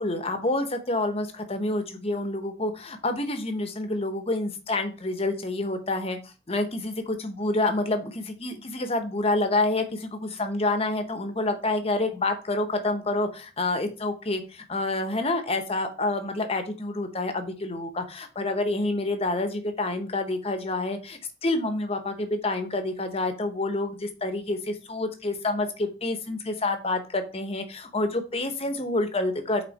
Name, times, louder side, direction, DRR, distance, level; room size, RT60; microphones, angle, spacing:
voice 1, 0.0-29.6, left 2 dB, 30° left, 7 dB, 1.0 m, -28 dB
8.6 x 3.9 x 4.1 m, 0.32 s
head